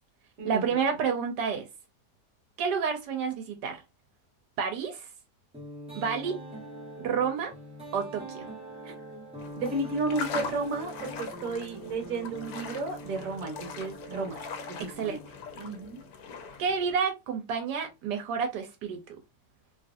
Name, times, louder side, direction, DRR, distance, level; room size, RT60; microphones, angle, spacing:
voice 1, 0.4-1.7 2.6-3.8 4.6-5.1 5.9-6.4 7.0-7.5 7.9-8.5 14.8-15.2 16.6-19.0, right 6 dB, 85° right, 1.3 m, -29 dB
sound 1, 5.5-16.1, right 1 dB, 5° right, 0.6 m, -44 dB
sound 2, 9.4-16.9, left 5 dB, 70° left, 1.1 m, -41 dB
voice 2, 9.5-15.2 15.5-16.0, right 3 dB, 55° right, 1.2 m, -33 dB
3.0 x 2.4 x 2.5 m
omnidirectional pair, 1.8 m